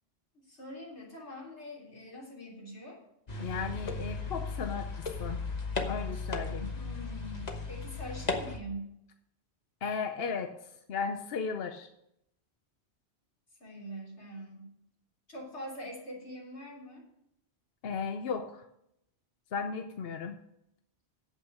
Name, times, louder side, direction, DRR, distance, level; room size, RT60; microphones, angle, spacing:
voice 1, 0.3-3.0 6.1-6.3 6.7-8.9 13.6-14.7 15.3-17.0, equal, 85° left, -3 dB, 3.6 m, -44 dB
sound 1, 3.3-8.6, left 3 dB, 40° left, 1.3 m, -36 dB
voice 2, 3.4-4.9 5.2-5.4 5.8-6.7 9.8-10.5 10.9-11.9 17.8-18.6 19.5-20.4, left 5 dB, 65° left, 7 dB, 0.9 m, -35 dB
8.8 x 8.0 x 6.5 m, 0.78 s
omnidirectional pair, 1.1 m